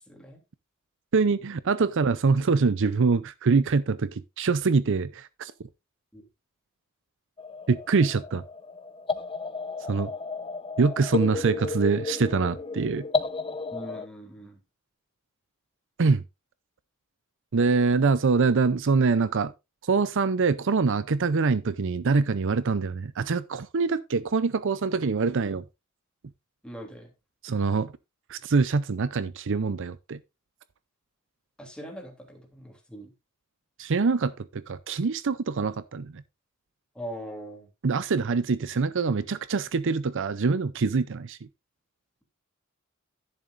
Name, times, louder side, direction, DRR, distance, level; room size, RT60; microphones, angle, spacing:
voice 1, 0.1-0.4 6.1-6.2 13.7-14.6 26.6-27.1 31.6-33.1 36.9-37.7, equal, 5° left, 3.1 m, -41 dB
voice 2, 1.1-5.5 7.7-8.4 9.9-10.1 10.8-13.1 16.0-16.2 17.5-19.5 19.8-25.6 27.4-27.9 28.3-30.2 33.8-36.2 37.8-41.4, right 4 dB, 60° right, 0.6 m, -24 dB
sound 1, 7.4-14.1, left 4 dB, 25° left, 0.7 m, -33 dB
11.0 x 10.5 x 2.5 m
head